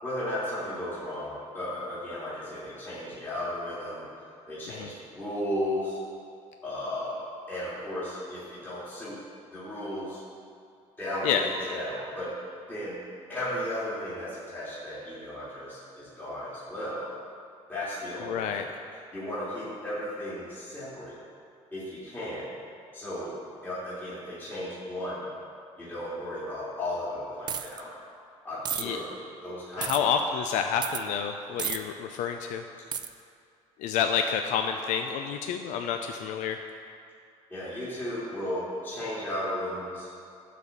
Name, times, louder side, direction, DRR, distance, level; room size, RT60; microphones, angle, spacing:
voice 1, 0.0-4.0 4.5-6.0 6.6-7.2 7.5-9.2 9.5-10.2 11.0-12.3 12.7-13.0 13.3-17.1 17.7-18.7 19.1-21.2 21.7-22.5 22.9-23.3 23.6-25.2 25.8-27.9 28.4-29.1 29.4-30.0 34.7-34.8 37.5-40.1, left 1 dB, 15° left, -10 dB, 2.6 m, -35 dB
voice 2, 18.2-18.7 28.8-29.0 29.8-32.7 33.8-36.6, left 7 dB, 75° left, 5 dB, 0.5 m, -29 dB
sound 1, 27.5-27.8 28.7-28.8 29.8-30.0 30.8-31.0 31.6-31.8 32.9-33.1, right 8 dB, 35° right, 0.4 m, -31 dB
12.0 x 4.2 x 7.0 m, 2.5 s
cardioid pair, 135°, 13 cm